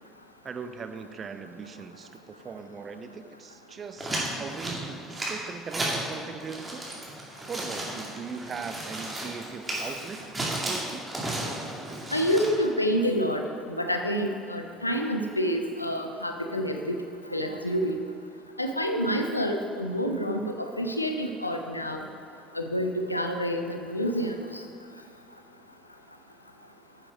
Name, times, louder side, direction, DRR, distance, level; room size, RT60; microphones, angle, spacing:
voice 1, 0.4-11.1, right 5 dB, 35° right, 8 dB, 0.7 m, -40 dB
sound 1, 4.0-6.1 6.4-12.5, right 1 dB, 15° right, 2.5 m, -33 dB
voice 2, 12.1-13.4 13.8-16.9 17.3-18.0 18.6-22.0 22.5-24.4, equal, 90° left, 4 dB, 0.5 m, -28 dB
9.7 x 7.5 x 5.0 m, 2.6 s
figure-of-eight pair, 60°, 0 cm